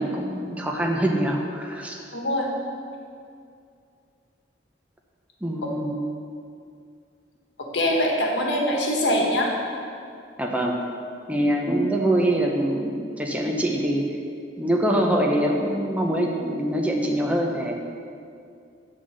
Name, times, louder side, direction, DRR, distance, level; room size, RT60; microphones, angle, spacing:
voice 1, 0.0-2.0 5.4-5.9 10.4-10.8 11.3-14.1 14.6-17.7, right 1 dB, 10° right, 0 dB, 0.6 m, -24 dB
voice 2, 2.1-2.5 7.7-9.5, left 1 dB, 80° left, -1 dB, 1.2 m, -23 dB
7.7 x 3.9 x 6.3 m, 2.4 s
head